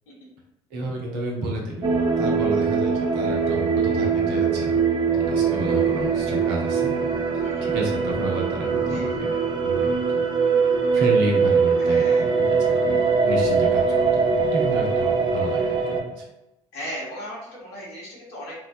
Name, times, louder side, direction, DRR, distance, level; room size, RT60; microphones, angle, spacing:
voice 1, 0.7-1.9 2.2-4.8 5.1-6.9 7.3-10.2 10.9-12.3 12.7-13.8 14.1-16.3, right 2 dB, 70° right, -1 dB, 0.7 m, -31 dB
sound 1, 1.8-16.0, right 5 dB, 30° right, 0.5 m, -22 dB
voice 2, 11.8-12.4 16.7-18.5, equal, 70° left, -6 dB, 1.2 m, -37 dB
3.1 x 2.1 x 2.5 m, 0.89 s
hypercardioid pair, 50°, 16 cm